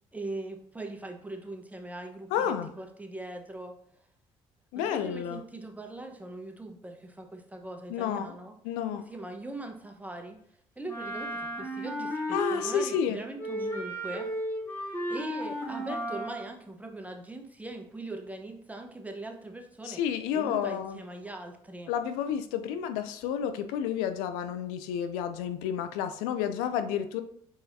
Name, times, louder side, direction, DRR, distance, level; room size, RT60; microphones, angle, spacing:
voice 1, 0.1-3.7 4.7-8.5 9.1-10.4 10.8-14.3 15.1-20.0 20.3-21.9, right 2 dB, 10° right, 4 dB, 1.0 m, -41 dB
voice 2, 2.3-2.7 4.7-5.4 7.9-8.3 8.6-9.0 12.3-13.2 19.8-21.0 21.9-27.2, left 9 dB, 85° left, 9 dB, 0.4 m, -30 dB
Wind instrument woodwind instrument, 10.9-13.1 13.4-16.5, equal, 15° left, 1.9 m, -34 dB
4.6 x 4.3 x 2.7 m, 0.66 s
hypercardioid pair, 60°, 13 cm